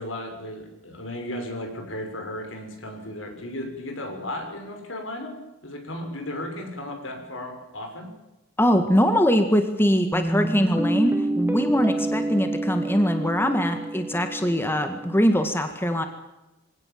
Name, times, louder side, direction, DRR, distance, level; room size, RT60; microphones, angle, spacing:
voice 1, 0.0-5.4 5.6-8.1, left 1 dB, 80° left, 4 dB, 6.2 m, -35 dB
voice 2, 8.6-16.1, equal, 10° left, 6 dB, 1.9 m, -22 dB
Guitar, 10.1-15.2, right 1 dB, 10° right, 1.7 m, -28 dB
24.5 x 17.5 x 7.6 m, 0.99 s
head